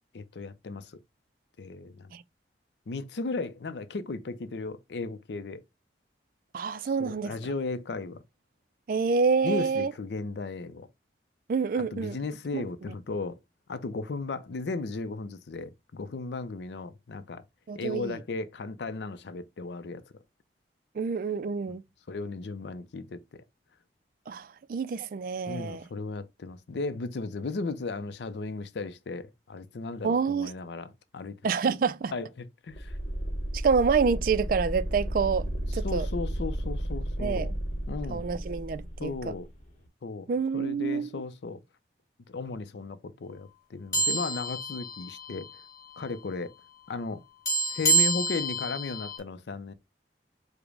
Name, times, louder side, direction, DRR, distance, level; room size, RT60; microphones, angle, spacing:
voice 1, 0.1-0.9 1.6-2.1 2.9-5.6 6.8-8.2 9.4-10.9 11.8-13.4 13.7-17.4 17.7-20.0 22.1-23.2 25.5-31.4 32.1-33.0 35.8-37.6 37.9-38.3 39.0-39.5 40.0-41.6 42.3-45.5 46.0-46.5 46.9-47.2 47.6-49.7, left 3 dB, 75° left, 0.5 m, -35 dB
voice 2, 6.5-7.3 8.9-9.9 11.5-12.2 12.5-12.6 17.7-18.2 21.0-21.8 24.3-25.8 30.0-30.5 31.4-32.1 33.5-36.1 37.2-37.6 38.1-39.3 40.3-41.1, right 5 dB, 50° right, 0.3 m, -27 dB
sound 1, 32.7-39.4, right 1 dB, 45° left, 1.0 m, -33 dB
sound 2, 43.9-45.6 45.9-46.1 47.5-49.2, right 2 dB, 20° left, 1.5 m, -28 dB
5.0 x 2.1 x 4.7 m
head